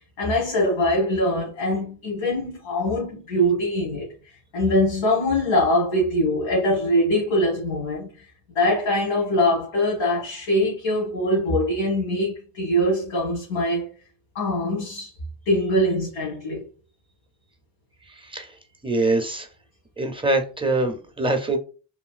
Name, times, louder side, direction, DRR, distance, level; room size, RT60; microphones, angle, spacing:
voice 1, 0.2-4.1 4.5-8.3 8.5-13.9 14.3-15.1 15.4-16.6, left 1 dB, 80° left, 1.4 m, -23 dB
voice 2, 18.2-18.5 18.8-19.5 20.0-21.6, right 2 dB, 15° right, 0.4 m, -24 dB
3.1 x 2.6 x 2.4 m
cardioid pair, 100°, 45 cm